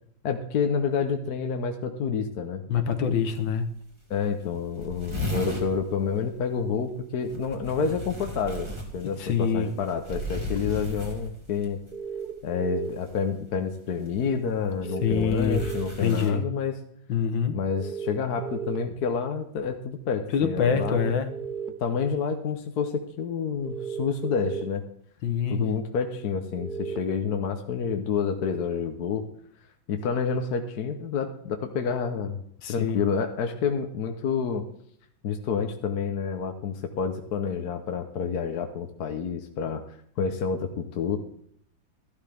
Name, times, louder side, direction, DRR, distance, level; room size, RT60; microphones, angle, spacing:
voice 1, 0.2-2.6 4.1-11.8 12.4-16.8 17.5-21.2 21.8-24.8 25.5-29.2 29.9-32.4 32.7-34.7 35.2-39.8 40.2-41.2, left 6 dB, 60° left, 5 dB, 1.3 m, -29 dB
voice 2, 2.7-3.7 9.2-9.7 15.0-15.6 16.0-16.4 17.1-17.6 20.3-21.3 25.2-25.7 32.6-33.0, left 6 dB, 75° left, 8 dB, 1.7 m, -25 dB
sound 1, 3.3-3.4 3.7-3.8 4.1-4.2 4.4-5.7 7.2-11.6 12.9-13.2 14.1-16.3, left 1 dB, 15° right, 2.2 m, -35 dB
sound 2, 11.9-12.9 14.9-15.8 17.8-18.8 20.7-21.7 23.6-24.6 26.6-27.0, right 6 dB, 35° right, 0.8 m, -34 dB
13.5 x 11.5 x 3.5 m, 0.67 s
omnidirectional pair, 2.1 m